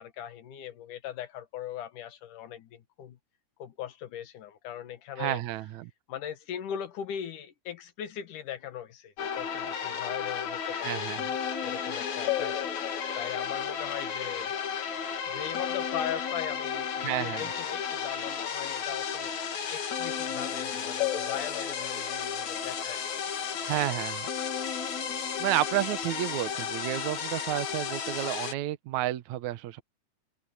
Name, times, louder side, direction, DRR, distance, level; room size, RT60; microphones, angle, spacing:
voice 1, 0.0-3.2 3.6-5.4 6.1-11.1 11.6-12.6 13.2-14.6 15.3-19.4 19.7-23.2 23.5-23.7, left 10 dB, 85° left, 3.1 m, -39 dB
voice 2, 5.2-5.9 10.7-11.2 17.0-17.5 23.7-24.3 25.4-29.8, right 15 dB, 75° right, 2.2 m, -31 dB
sound 1, 9.2-28.5, left 7 dB, 70° left, 3.6 m, -33 dB
omnidirectional pair, 3.5 m